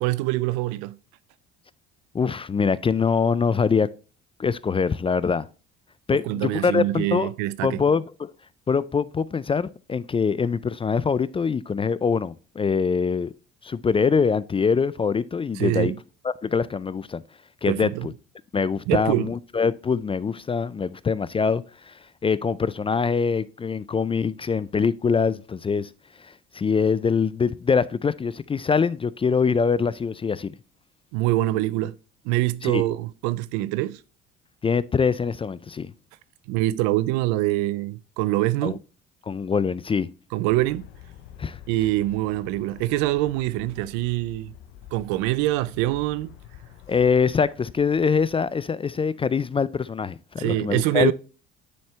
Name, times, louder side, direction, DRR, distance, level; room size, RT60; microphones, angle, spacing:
voice 1, 0.0-1.0 6.2-7.8 15.6-15.9 17.7-18.1 18.9-19.3 31.1-31.9 32.2-34.0 36.5-38.8 40.3-40.8 41.7-44.5 44.9-46.3 50.4-51.1, right 16 dB, 80° right, 0.5 m, -24 dB
voice 2, 2.1-3.9 4.4-5.5 6.1-7.3 7.6-8.3 8.7-13.3 13.6-15.9 16.2-17.2 17.6-18.1 18.5-25.9 26.2-30.6 32.6-32.8 34.6-35.9 38.6-38.8 39.3-40.1 41.4-41.6 46.9-51.1, left 5 dB, 20° left, 0.3 m, -24 dB
Aircraft, 40.4-48.8, left 10 dB, 90° left, 0.7 m, -47 dB
9.4 x 4.4 x 3.2 m
supercardioid pair, 70°, 29 cm